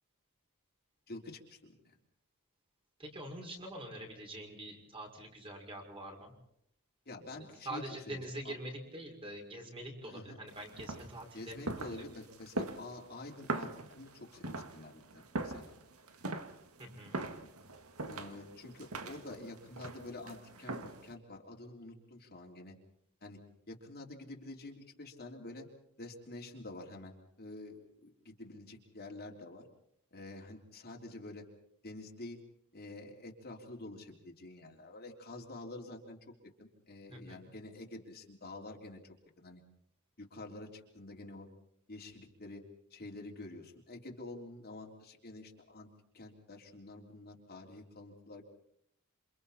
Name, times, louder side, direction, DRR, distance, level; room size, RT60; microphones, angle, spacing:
voice 1, 1.1-2.0 7.1-8.5 10.0-10.4 11.3-15.7 18.1-22.7 23.2-23.4 23.7-25.7 26.0-29.6 30.1-31.5 31.8-32.4 32.7-36.2 36.6-39.6 40.2-41.5 41.9-42.6 42.9-45.9 46.1-48.4, left 2 dB, 45° left, 0 dB, 3.6 m, -48 dB
voice 2, 3.0-6.3 7.3-11.6 16.8-17.2 37.1-37.4, right 1 dB, 25° right, 2 dB, 6.0 m, -45 dB
sound 1, 10.5-21.1, right 2 dB, 70° right, 2.0 m, -42 dB
28.5 x 27.0 x 4.3 m, 0.71 s
head